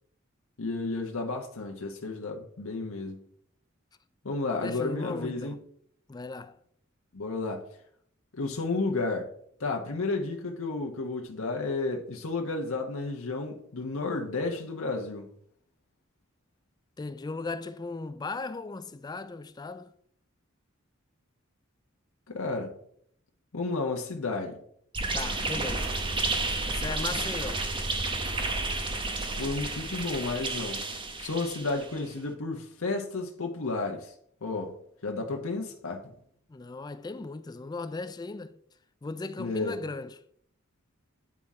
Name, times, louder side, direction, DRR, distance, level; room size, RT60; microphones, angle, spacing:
voice 1, 0.6-3.2 4.2-5.5 7.1-7.6 8.3-9.3 9.6-15.3 22.3-22.7 23.5-24.6 29.4-30.8 31.2-34.1 34.4-34.7 35.0-36.1 39.4-39.7, left 3 dB, 85° left, 1.0 m, -32 dB
voice 2, 4.6-5.6 6.1-6.6 17.0-19.9 25.1-25.9 26.7-27.6 36.5-38.6 39.0-40.2, left 3 dB, 20° left, 0.3 m, -37 dB
sound 1, 24.9-32.0, right 2 dB, 25° right, 0.8 m, -31 dB
9.7 x 3.7 x 4.2 m
head